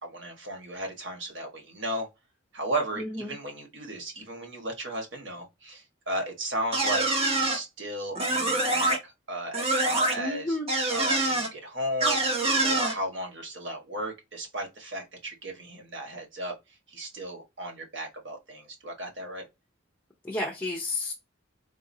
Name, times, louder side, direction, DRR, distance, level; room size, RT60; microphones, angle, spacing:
voice 1, 0.0-2.1 2.5-10.6 10.9-12.2 12.6-19.5, right 1 dB, 60° right, 1.3 m, -35 dB
voice 2, 3.0-3.3 10.2-10.7 20.2-21.1, left 2 dB, 10° left, 0.6 m, -31 dB
sound 1, 6.7-7.6 8.1-9.0 9.5-10.1 10.7-11.5 12.0-12.9, right 2 dB, 30° right, 0.9 m, -25 dB
3.9 x 2.6 x 2.7 m
head